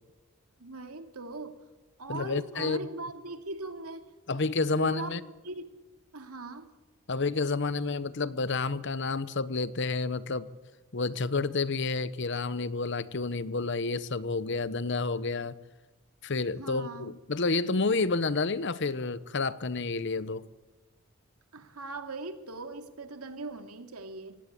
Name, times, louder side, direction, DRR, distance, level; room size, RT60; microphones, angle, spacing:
voice 1, 0.6-1.6 2.0-4.1 4.7-5.1 5.4-5.7 6.1-6.7 16.6-17.1 21.5-24.4, right 2 dB, 85° right, 2.4 m, -40 dB
voice 2, 2.1-2.8 4.3-5.2 7.1-10.5 10.9-15.5 16.2-20.5, left 3 dB, 55° left, 0.9 m, -30 dB
24.5 x 17.5 x 8.7 m
head